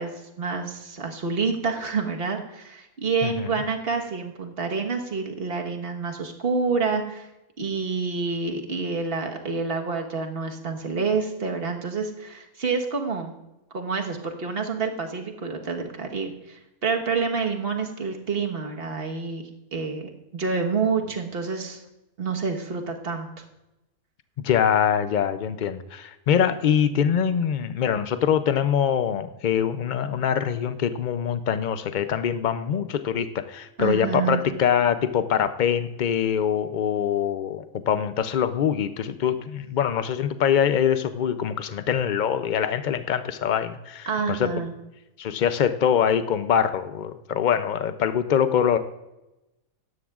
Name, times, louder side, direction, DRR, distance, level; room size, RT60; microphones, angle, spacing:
voice 1, 0.0-7.3 7.6-13.3 13.7-21.8 22.2-23.3 33.8-34.5 44.1-44.7, right 4 dB, 45° right, 3 dB, 1.5 m, -28 dB
voice 2, 24.4-44.5 45.2-48.8, left 8 dB, 90° left, 11 dB, 0.4 m, -24 dB
17.5 x 13.0 x 2.4 m, 0.97 s
omnidirectional pair, 1.5 m